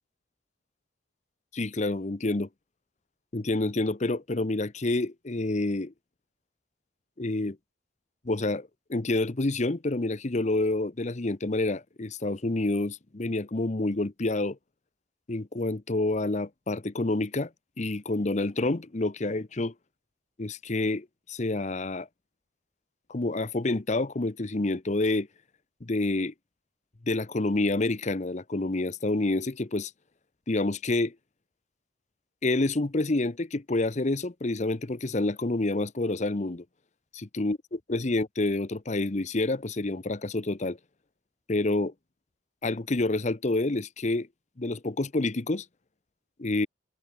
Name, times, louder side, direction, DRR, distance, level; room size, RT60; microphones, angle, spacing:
voice 1, 1.5-2.5 3.3-5.9 7.2-7.6 8.2-14.6 15.3-17.5 17.8-19.7 20.4-22.1 23.1-25.3 25.8-26.3 27.1-29.9 30.5-31.1 32.4-36.6 37.1-40.8 41.5-41.9 42.6-44.3 44.6-45.6 46.4-46.7, left 2 dB, 40° left, 0.8 m, -28 dB
head